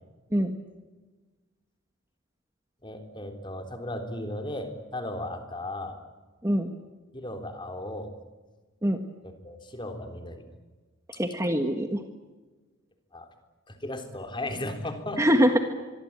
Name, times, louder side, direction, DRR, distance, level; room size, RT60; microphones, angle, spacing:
voice 1, 2.8-6.0 7.1-8.1 9.4-10.4 13.1-13.3 13.7-15.2, left 1 dB, 20° left, 6 dB, 3.7 m, -36 dB
voice 2, 11.1-12.0 15.2-15.6, equal, 15° right, 6 dB, 1.6 m, -23 dB
25.0 x 23.5 x 8.9 m, 1.3 s
head